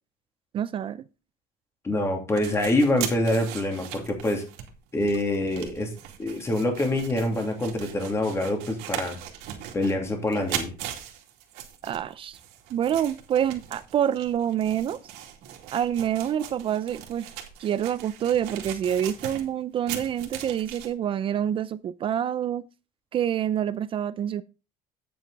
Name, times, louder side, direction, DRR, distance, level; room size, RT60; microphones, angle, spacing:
voice 1, 0.5-1.0 11.8-12.4 12.7-15.0 15.7-17.3 17.6-22.6 23.1-24.4, right 10 dB, 35° right, 0.4 m, -27 dB
voice 2, 1.8-4.4 4.9-5.9 6.2-9.2 9.7-10.7, left 1 dB, 15° left, 2.5 m, -25 dB
sound 1, 2.3-20.9, right 10 dB, 75° right, 2.4 m, -39 dB
9.3 x 7.6 x 3.9 m
cardioid pair, 150°, 16 cm